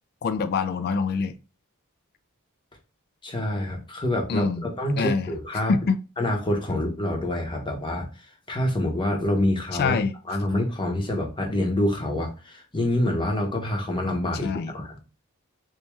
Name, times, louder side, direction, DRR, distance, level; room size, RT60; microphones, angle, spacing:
voice 1, 0.2-1.4 4.3-4.7 5.0-5.3 5.7-6.0 9.7-10.1 14.4-14.7, left 5 dB, 45° left, 0.3 m, -25 dB
voice 2, 3.2-5.7 6.2-10.0 10.3-15.0, left 1 dB, 20° left, 0.8 m, -26 dB
3.0 x 2.7 x 3.3 m
head